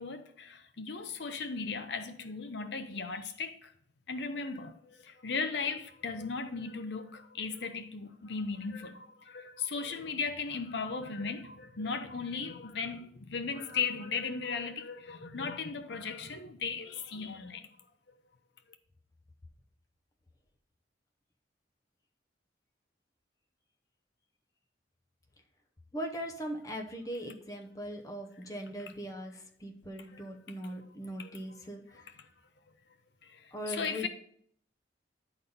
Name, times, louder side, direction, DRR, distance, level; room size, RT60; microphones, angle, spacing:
voice 1, 0.0-3.7 4.1-17.6 30.1-30.2 31.2-31.3 33.7-34.1, left 5 dB, 65° left, 0.7 m, -37 dB
voice 2, 25.9-32.0 33.5-34.1, equal, 20° left, 0.8 m, -40 dB
10.0 x 4.0 x 5.4 m
head